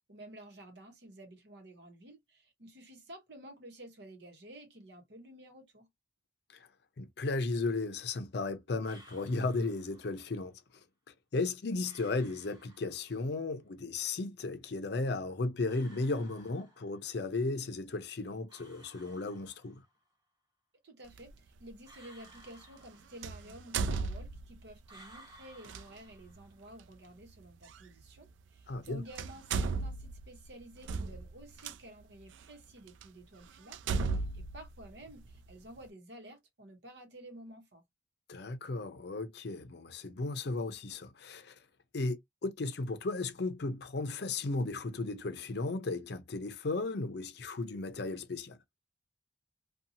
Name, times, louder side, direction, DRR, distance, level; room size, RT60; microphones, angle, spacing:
voice 1, 0.1-5.9 20.8-37.8, right 1 dB, 65° right, 1.0 m, -52 dB
voice 2, 7.0-10.6 11.3-19.8 28.7-29.0 38.3-41.6 41.9-48.6, left 3 dB, 60° left, 0.5 m, -35 dB
sound 1, 8.8-10.3 11.8-13.3 15.6-17.2 18.5-20.0 21.8-23.6 24.9-26.7, right 1 dB, 25° right, 1.3 m, -58 dB
sound 2, 21.1-21.3 23.2-24.7 25.6-25.8 27.7-27.8 28.7-28.9 29.1-31.7 32.4-32.5 33.0-33.1 33.7-35.5, right 4 dB, 85° right, 0.3 m, -35 dB
2.7 x 2.3 x 2.7 m
head